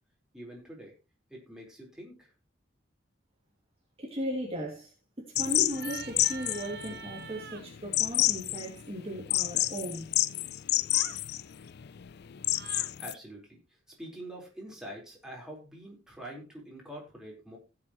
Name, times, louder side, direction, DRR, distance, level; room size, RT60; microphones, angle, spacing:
voice 1, 0.3-0.9 1.3-2.3 13.0-13.6 14.0-17.6, right 1 dB, 5° right, 4.3 m, -45 dB
voice 2, 4.0-4.9 5.2-10.1, equal, 30° right, 2.5 m, -36 dB
sound 1, 5.4-13.1, left 16 dB, 60° left, 0.4 m, -29 dB
sound 2, 5.7-7.6 10.9-11.2 12.4-12.9, right 7 dB, 60° right, 1.1 m, -45 dB
16.5 x 7.5 x 3.1 m
head